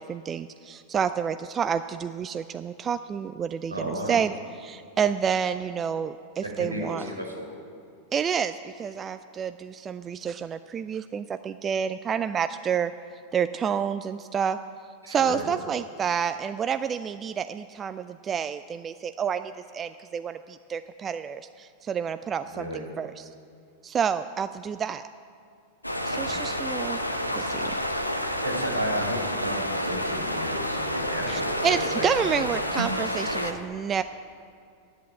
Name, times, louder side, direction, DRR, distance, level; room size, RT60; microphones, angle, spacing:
voice 1, 0.0-4.3 4.6-7.1 8.1-12.9 13.3-14.6 15.1-23.3 23.8-25.0 26.0-27.0 27.3-27.7 31.3-34.0, right 7 dB, 25° right, 11 dB, 0.3 m, -29 dB
voice 2, 3.7-4.1 6.4-7.5 15.0-15.5 22.5-22.9 26.3-26.5 28.4-32.4, right 1 dB, 85° right, 0 dB, 2.3 m, -33 dB
sound 1, 25.8-33.5, equal, 85° left, 0.8 m, -29 dB
10.5 x 8.2 x 8.7 m, 2.4 s
figure-of-eight pair, 90°, 0 cm